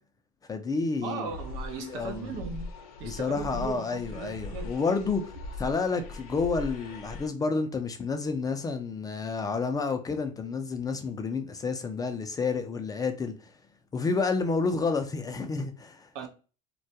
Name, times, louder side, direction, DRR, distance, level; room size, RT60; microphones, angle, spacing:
voice 1, 0.5-1.3 1.8-2.3 3.0-5.3 5.6-13.5 13.9-16.1, left 4 dB, 20° left, 0.4 m, -30 dB
voice 2, 1.0-2.7 3.0-4.7 16.1-16.3, right 5 dB, 70° right, 0.7 m, -38 dB
sound 1, 1.2-7.3, left 3 dB, 85° left, 0.6 m, -40 dB
2.2 x 2.2 x 2.6 m
supercardioid pair, 105°, 18 cm